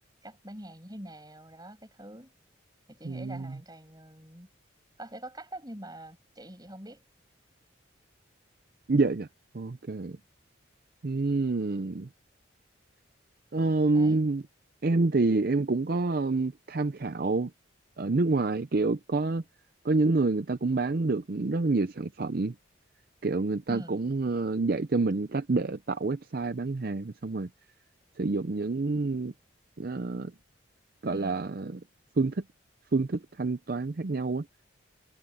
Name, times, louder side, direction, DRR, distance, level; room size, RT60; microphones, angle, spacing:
voice 1, 0.2-2.3 2.9-4.5 5.0-7.0 13.9-14.2 23.7-24.0 31.1-31.4, right 1 dB, 20° right, 6.8 m, -44 dB
voice 2, 3.0-3.6 8.9-9.3 9.5-10.2 11.0-12.1 13.5-14.4 14.8-17.5 18.0-19.4 19.8-22.5 23.2-27.5 28.2-29.3 29.8-30.3 31.0-31.8 32.2-32.4 32.9-34.5, right 3 dB, 45° right, 0.5 m, -27 dB
head